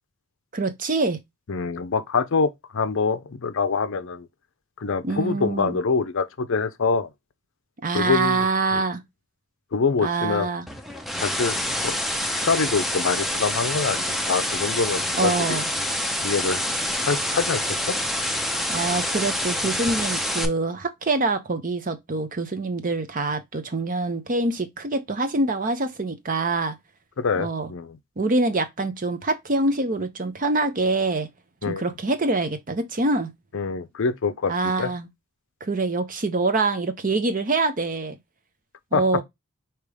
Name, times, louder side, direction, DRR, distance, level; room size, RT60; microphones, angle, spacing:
voice 1, 0.5-1.2 5.0-5.8 7.8-9.0 10.0-10.7 15.2-15.6 18.7-26.8 27.4-27.7 28.2-31.3 31.7-33.3 34.5-35.1 35.6-38.1 38.9-39.2, right 3 dB, 35° right, 0.7 m, -25 dB
voice 2, 1.5-4.3 4.8-7.1 7.9-8.5 8.7-8.8 9.7-10.5 11.2-12.0 12.3-15.6 16.2-16.6 17.0-18.0 27.2-28.0 31.6-31.8 33.5-34.5 34.8-34.9 38.9-39.0, left 4 dB, 60° left, 0.5 m, -25 dB
sound 1, 10.7-20.5, left 1 dB, ahead, 0.5 m, -27 dB
5.0 x 2.9 x 3.3 m
head